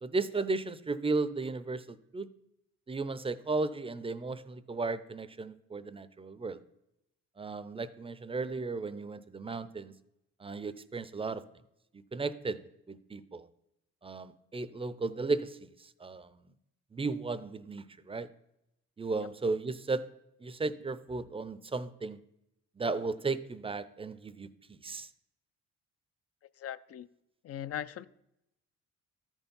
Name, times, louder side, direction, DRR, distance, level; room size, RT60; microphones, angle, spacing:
voice 1, 0.0-2.3 2.9-6.6 7.4-9.9 10.4-11.4 12.1-13.5 14.0-16.3 16.9-18.3 19.0-20.1 20.4-22.2 22.8-24.5 24.8-25.1, right 3 dB, 20° right, 14 dB, 0.5 m, -35 dB
voice 2, 26.6-27.1 27.4-28.1, left 10 dB, 50° left, 15 dB, 0.4 m, -39 dB
13.0 x 4.5 x 5.3 m, 0.84 s
cardioid pair, 90°, 30 cm